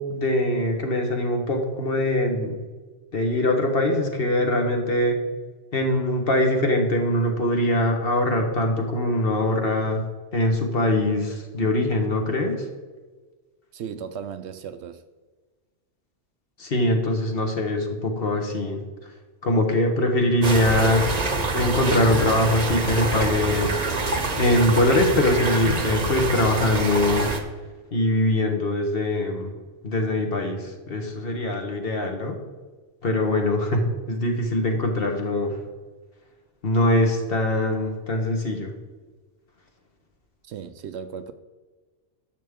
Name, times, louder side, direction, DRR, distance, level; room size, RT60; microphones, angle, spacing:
voice 1, 0.0-2.6 3.1-5.2 5.7-10.0 10.3-12.6 16.6-19.1 19.4-21.0 21.5-23.7 24.4-27.3 27.9-29.5 29.8-32.4 33.0-35.6 36.6-38.7, left 1 dB, 50° left, 1.4 m, -22 dB
voice 2, 13.7-15.0 40.4-41.3, right 7 dB, 70° right, 0.8 m, -36 dB
sound 1, 20.4-27.4, right 3 dB, 35° right, 0.9 m, -26 dB
10.5 x 7.0 x 3.6 m
omnidirectional pair, 1.2 m